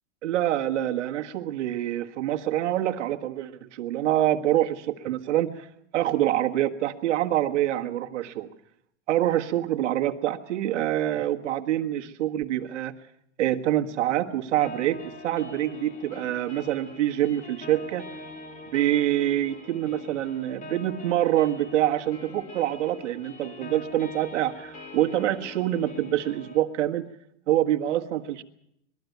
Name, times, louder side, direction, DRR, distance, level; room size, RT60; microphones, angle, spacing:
voice 1, 0.2-5.7 5.9-8.5 9.1-12.9 13.4-18.1 18.7-27.1 27.5-28.4, right 13 dB, 85° right, 3 dB, 1.7 m, -26 dB
sound 1, 14.6-26.6, left 2 dB, 20° left, 2.0 m, -43 dB
21.5 x 13.5 x 9.3 m, 0.74 s
supercardioid pair, 155°, 35 cm